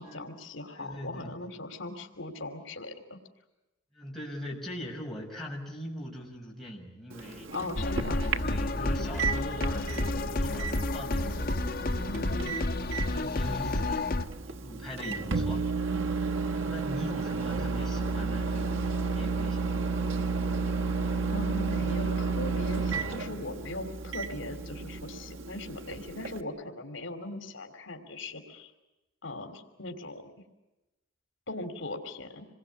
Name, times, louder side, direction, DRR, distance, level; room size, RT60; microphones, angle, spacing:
voice 1, 0.0-3.2 7.5-8.3 12.1-12.6 15.0-15.2 21.3-28.7 29.2-30.3 31.5-32.5, left 2 dB, 70° left, 6 dB, 3.1 m, -39 dB
voice 2, 0.7-1.3 3.9-7.5 8.4-11.5 12.1-12.4 12.9-14.0 14.4-15.6 16.5-19.8, equal, ahead, -3 dB, 5.9 m, -41 dB
Microwave oven, 7.1-26.4, right 4 dB, 80° right, 1.3 m, -32 dB
sound 1, 7.8-14.3, left 2 dB, 50° left, 1.2 m, -30 dB
27.5 x 21.5 x 8.5 m, 1.0 s
head